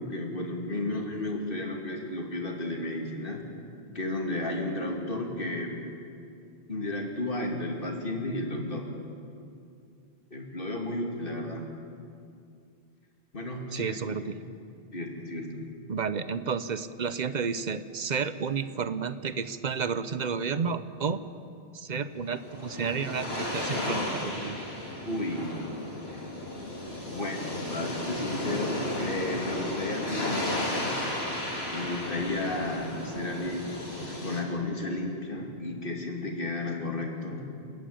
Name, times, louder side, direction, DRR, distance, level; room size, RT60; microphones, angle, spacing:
voice 1, 0.0-3.4 3.9-5.7 6.7-8.9 10.3-11.6 13.3-14.2 14.9-15.7 25.0-25.6 26.1-26.2 27.1-30.9 31.7-33.7 34.0-37.4, left 2 dB, 55° left, 1 dB, 2.7 m, -33 dB
voice 2, 13.7-14.3 15.9-21.2 21.7-24.6, right 6 dB, 45° right, 13 dB, 0.8 m, -31 dB
sound 1, 22.1-34.4, left 1 dB, 75° left, 3.8 m, -34 dB
29.5 x 10.5 x 8.6 m, 2.5 s
omnidirectional pair, 1.1 m